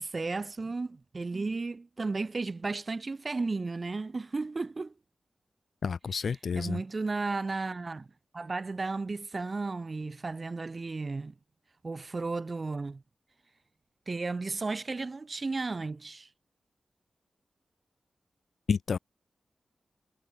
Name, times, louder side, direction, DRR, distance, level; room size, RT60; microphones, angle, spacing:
voice 1, 0.0-4.9 6.6-8.1 8.3-11.3 11.8-13.0 14.1-16.3, right 3 dB, 35° right, 1.7 m, -34 dB
voice 2, 5.8-6.8 18.7-19.0, left 6 dB, 70° left, 0.5 m, -30 dB
wide cardioid pair, 145°, 0 cm